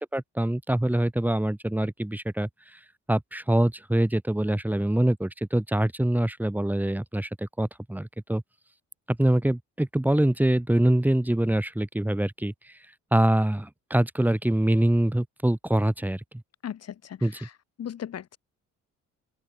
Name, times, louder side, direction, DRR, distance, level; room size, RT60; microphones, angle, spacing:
voice 1, 0.1-2.5 3.1-8.4 9.1-12.5 13.1-16.2 17.2-17.4, right 1 dB, 5° right, 1.7 m, -24 dB
voice 2, 16.6-17.5 17.8-18.4, left 9 dB, 55° left, 1.9 m, -37 dB
open air
cardioid pair, 90°, 30 cm